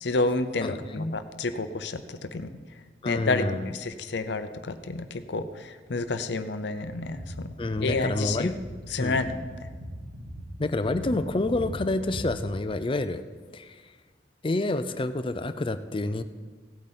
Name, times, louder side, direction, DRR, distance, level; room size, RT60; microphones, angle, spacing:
voice 1, 0.0-2.5 3.0-3.4 3.7-8.5 8.9-9.4, left 3 dB, 70° left, 10 dB, 0.7 m, -30 dB
voice 2, 0.6-1.2 3.0-3.7 7.6-8.5 9.0-9.2 10.6-13.2 13.5-13.8 14.4-16.2, left 2 dB, 30° left, 11 dB, 0.5 m, -28 dB
sound 1, 6.9-12.5, equal, 80° right, 3.1 m, -39 dB
16.5 x 8.6 x 4.2 m, 1.5 s
head